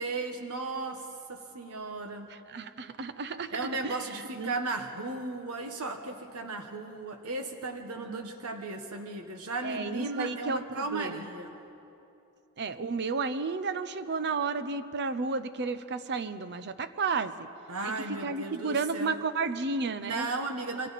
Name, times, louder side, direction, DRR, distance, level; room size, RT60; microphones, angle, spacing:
voice 1, 0.0-2.3 3.5-11.6 17.7-19.1 20.0-20.9, right 3 dB, 75° right, 5 dB, 1.3 m, -36 dB
voice 2, 2.3-3.6 3.8-4.0 4.4-4.5 8.0-8.3 9.6-11.2 12.6-17.5 17.8-17.9 18.2-20.3, right 4 dB, 50° right, 11 dB, 0.7 m, -32 dB
27.0 x 24.5 x 4.2 m, 2.9 s
head